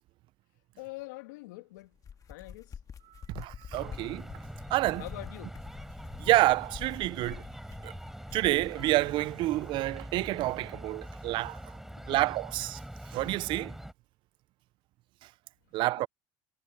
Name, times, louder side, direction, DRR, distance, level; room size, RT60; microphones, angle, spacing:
voice 1, 0.8-1.9 2.3-2.7 5.0-5.6 11.0-11.1 12.0-12.2 16.0-16.1, left 20 dB, 80° left, 2.3 m, -44 dB
sound 1, 1.8-9.0, left 7 dB, 40° left, 1.8 m, -47 dB
voice 2, 3.4-4.2 4.7-5.0 6.2-7.4 7.8-7.9 8.3-11.6 12.1-12.8 13.1-13.7 15.7-16.1, right 18 dB, 60° right, 0.5 m, -28 dB
sound 2, 3.7-13.9, right 1 dB, 5° right, 4.5 m, -44 dB
hypercardioid pair, 80°, 9 cm